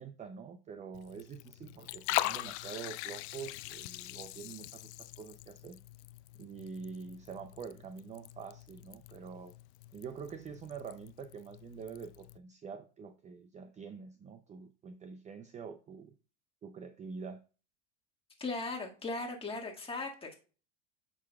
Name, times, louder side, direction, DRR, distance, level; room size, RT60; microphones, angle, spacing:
voice 1, 0.0-5.8 6.4-9.5 9.9-16.2 16.6-17.4, right 6 dB, 20° right, 11 dB, 0.5 m, -46 dB
Liquid, 0.9-12.4, left 19 dB, 70° left, 0.5 m, -42 dB
voice 2, 18.4-20.3, left 3 dB, 15° left, 0 dB, 1.8 m, -38 dB
8.1 x 6.1 x 2.3 m, 0.35 s
supercardioid pair, 110°, 35 cm